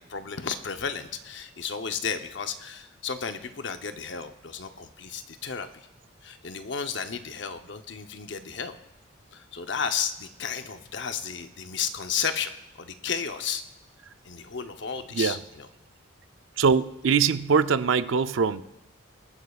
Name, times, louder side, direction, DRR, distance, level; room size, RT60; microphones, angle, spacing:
voice 1, 0.1-5.9 6.2-8.8 9.3-13.6 14.2-15.7, left 6 dB, 60° left, 8 dB, 0.8 m, -33 dB
voice 2, 16.6-18.6, right 5 dB, 75° right, 13 dB, 0.5 m, -22 dB
22.0 x 9.4 x 2.4 m, 0.96 s
head